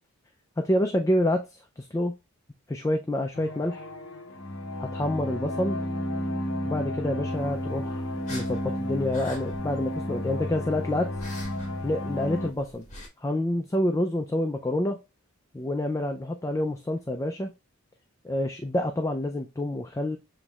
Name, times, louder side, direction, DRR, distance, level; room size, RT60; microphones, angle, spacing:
voice 1, 0.6-2.1 2.7-3.9 4.8-5.8 6.6-8.0 8.3-11.1 11.8-12.8 13.2-15.0 15.5-17.5 18.2-20.2, left 1 dB, 15° left, 4 dB, 0.3 m, -28 dB
sound 1, 3.3-12.5, left 1 dB, 55° left, 0.7 m, -32 dB
sound 2, 7.3-13.1, left 1 dB, 30° left, 1.8 m, -46 dB
7.0 x 3.0 x 2.3 m, 0.25 s
head